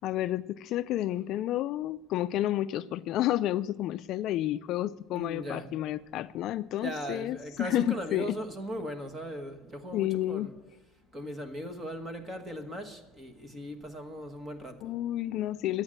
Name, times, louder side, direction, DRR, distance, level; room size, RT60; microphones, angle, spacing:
voice 1, 0.0-8.3 9.9-10.5 14.8-15.8, left 13 dB, 50° left, 0.3 m, -30 dB
voice 2, 5.1-5.7 6.8-10.5 11.1-14.9, equal, 15° right, 1.3 m, -38 dB
12.5 x 8.8 x 7.5 m
cardioid pair, 170°, 0 cm